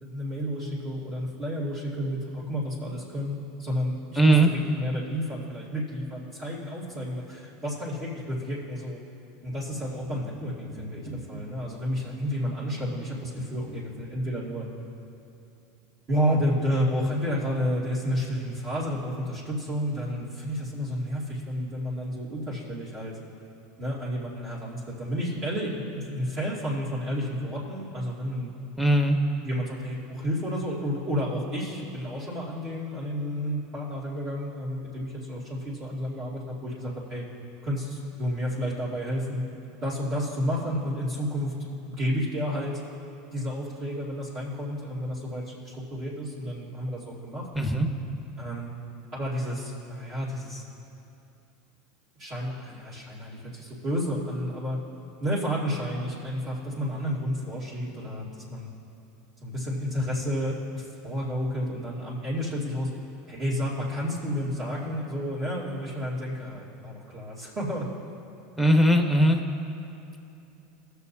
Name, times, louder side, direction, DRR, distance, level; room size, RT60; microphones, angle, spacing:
voice 1, 0.0-9.0 9.4-14.7 16.1-23.2 23.8-28.5 29.4-37.2 37.6-39.4 39.8-41.5 41.8-42.8 43.3-47.5 48.4-48.8 49.1-50.6 52.2-54.8 55.2-58.7 59.4-62.9 63.3-67.9, equal, 40° right, -8 dB, 2.5 m, -31 dB
voice 2, 4.2-4.5 28.8-29.2 47.5-47.9 68.6-69.4, equal, 5° right, 3 dB, 1.2 m, -19 dB
19.0 x 6.8 x 2.8 m, 2.8 s
hypercardioid pair, 100°, 0 cm